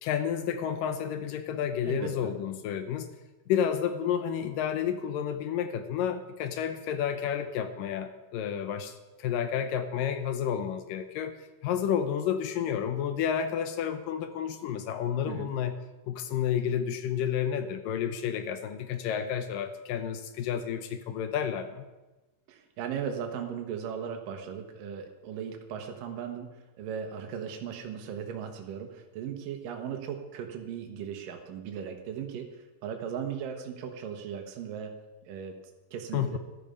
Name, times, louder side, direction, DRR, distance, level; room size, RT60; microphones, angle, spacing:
voice 1, 0.0-3.1 3.5-11.3 11.6-15.7 16.1-21.9 36.1-36.4, left 8 dB, 80° left, 8 dB, 2.5 m, -30 dB
voice 2, 1.8-2.3 15.3-15.5 22.5-26.5 26.8-34.9 35.2-35.5 35.9-36.4, right 7 dB, 75° right, 4 dB, 2.9 m, -37 dB
14.0 x 12.0 x 5.5 m, 1.1 s
omnidirectional pair, 4.0 m